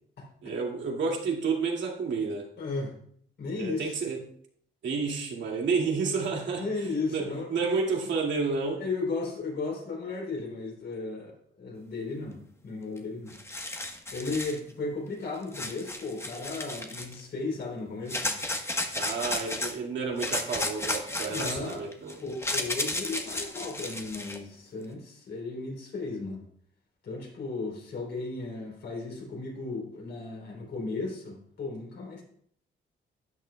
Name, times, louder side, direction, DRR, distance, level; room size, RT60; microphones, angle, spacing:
voice 1, 0.4-2.5 3.6-4.2 4.8-6.7 7.1-8.8 18.9-22.2, right 4 dB, 65° right, -1 dB, 2.3 m, -30 dB
voice 2, 2.6-3.0 3.4-4.0 6.5-7.8 8.8-13.4 14.1-18.3 21.2-21.8 22.2-26.4 27.0-32.2, left 3 dB, 60° left, -1 dB, 3.7 m, -35 dB
sound 1, 13.0-13.1 13.3-14.6 15.5-17.2 18.1-19.7 20.2-24.4, left 2 dB, 15° left, 1.2 m, -33 dB
12.0 x 8.3 x 2.3 m, 0.63 s
cardioid pair, 90°, 20 cm